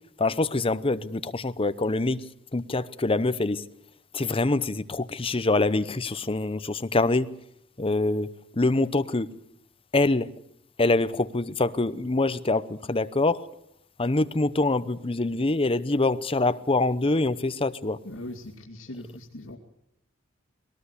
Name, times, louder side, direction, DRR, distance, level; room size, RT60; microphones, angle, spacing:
voice 1, 0.2-2.2 2.5-3.6 4.1-7.3 7.8-9.3 9.9-10.3 10.8-13.4 14.0-18.0, left 2 dB, 25° left, 0.8 m, -25 dB
voice 2, 18.0-19.6, left 1 dB, 75° left, 2.6 m, -40 dB
21.0 x 18.5 x 8.3 m
head